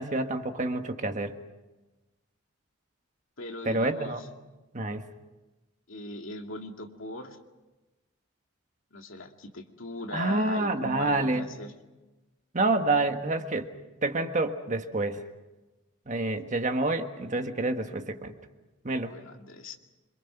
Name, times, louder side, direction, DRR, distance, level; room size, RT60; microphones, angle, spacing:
voice 1, 0.0-1.4 3.6-4.2 4.7-5.0 10.1-11.5 12.5-13.7 14.0-15.2 16.1-18.3 18.8-19.1, right 2 dB, 35° right, 6 dB, 1.5 m, -28 dB
voice 2, 3.4-4.3 5.9-7.4 8.9-11.7 19.0-19.8, left 2 dB, 70° left, 3 dB, 2.4 m, -39 dB
27.0 x 26.0 x 5.9 m, 1.1 s
head